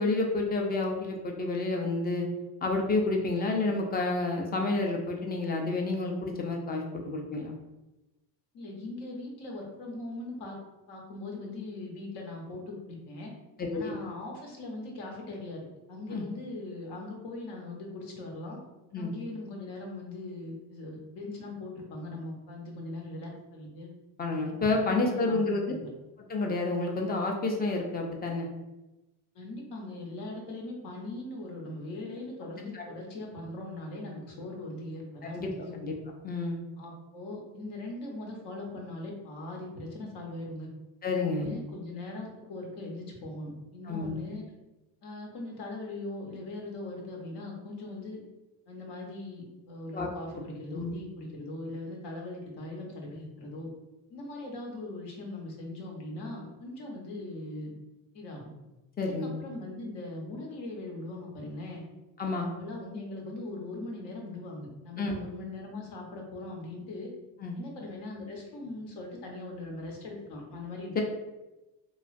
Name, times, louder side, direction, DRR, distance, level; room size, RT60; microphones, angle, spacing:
voice 1, 0.0-2.3 2.6-7.5 13.6-13.9 16.1-16.2 18.9-19.1 24.2-25.7 26.3-28.5 32.7-32.8 35.2-35.5 35.8-35.9 36.2-36.6 41.0-41.5 43.9-44.1 49.9-50.1 50.7-50.9 59.0-59.3 62.2-62.5 65.0-65.1 67.4-67.6 70.9-71.0, left 3 dB, 25° left, 1 dB, 0.4 m, -29 dB
voice 2, 8.5-10.6 10.9-13.3 13.7-18.6 19.0-23.9 24.6-25.9 29.3-35.8 36.8-40.7 41.2-44.4 45.0-48.2 48.7-53.7 54.1-57.7 58.1-58.5 59.0-61.8 62.6-67.1 67.6-70.9, left 2 dB, 70° left, 0 dB, 0.9 m, -40 dB
2.9 x 2.3 x 2.5 m, 1.0 s
cardioid pair, 120°, 42 cm